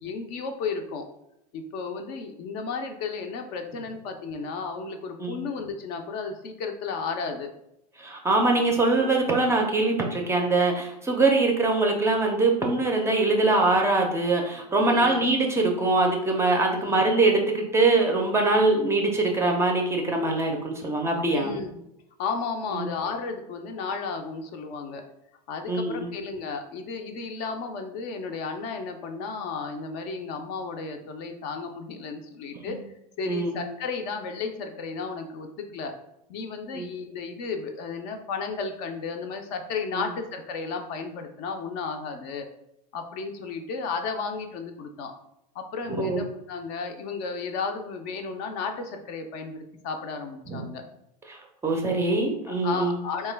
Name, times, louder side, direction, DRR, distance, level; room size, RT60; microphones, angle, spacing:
voice 1, 0.0-1.1 1.5-7.5 9.0-9.2 14.9-15.2 16.7-17.0 21.3-21.8 22.2-25.0 25.5-32.8 33.2-35.9 36.3-42.5 42.9-45.1 45.5-50.8 52.5-53.3, left 4 dB, 50° left, 5 dB, 0.5 m, -33 dB
voice 2, 8.0-21.5 22.7-22.9 25.7-26.1 32.7-32.8 33.2-33.5 36.7-36.9 46.0-46.2 50.5-50.6 51.3-53.0, right 2 dB, 15° right, 1 dB, 0.5 m, -23 dB
2.9 x 2.2 x 3.3 m, 0.80 s
supercardioid pair, 115°, 21 cm